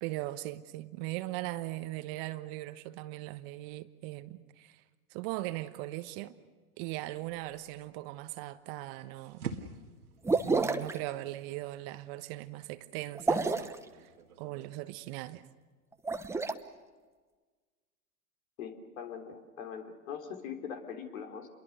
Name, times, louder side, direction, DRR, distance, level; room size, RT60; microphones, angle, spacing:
voice 1, 0.0-4.8 5.1-6.3 6.8-9.6 10.4-14.1 14.4-15.4, right 17 dB, 45° right, 1.2 m, -39 dB
sound 1, 7.1-14.7, right 5 dB, 85° right, 2.1 m, -48 dB
sound 2, 10.2-11.0 13.1-13.8 15.9-16.5, right 3 dB, 5° right, 0.9 m, -29 dB
voice 2, 18.6-21.5, left 7 dB, 65° left, 3.9 m, -42 dB
28.5 x 22.5 x 6.7 m
hypercardioid pair, 110°, 44 cm